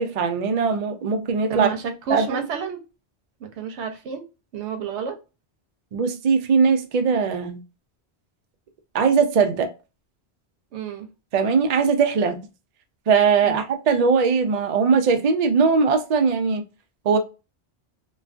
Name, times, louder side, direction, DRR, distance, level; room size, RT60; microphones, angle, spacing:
voice 1, 0.0-1.7 2.1-2.4 5.9-7.6 8.9-9.7 11.3-12.4 13.1-16.6 17.0-17.2, right 5 dB, 60° right, 0.4 m, -20 dB
voice 2, 1.5-2.8 3.4-4.3 4.5-5.2 10.7-11.1 13.4-13.6, right 6 dB, 85° right, 0.9 m, -30 dB
2.3 x 2.3 x 2.3 m
omnidirectional pair, 1.1 m